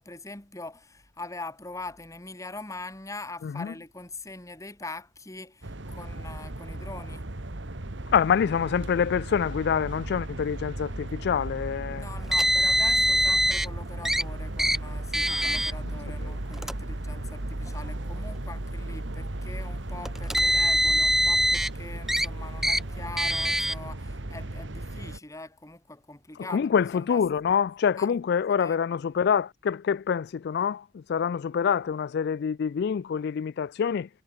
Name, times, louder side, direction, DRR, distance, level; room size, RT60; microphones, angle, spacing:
voice 1, 0.0-7.2 11.9-27.3 27.9-28.1 28.6-28.8, left 2 dB, 15° left, 2.0 m, -42 dB
voice 2, 3.4-3.7 8.1-12.1 15.3-15.7 16.2-16.3 26.5-34.1, left 7 dB, 55° left, 0.3 m, -26 dB
sound 1, 5.6-25.2, right 1 dB, 65° right, 1.7 m, -36 dB
Car, 12.3-13.7 14.0-14.2 14.6-14.8 15.1-15.7 16.5-16.7 17.7-17.8 20.1-21.7 22.1-22.3 22.6-22.8 23.2-23.7, right 1 dB, ahead, 0.5 m, -23 dB
head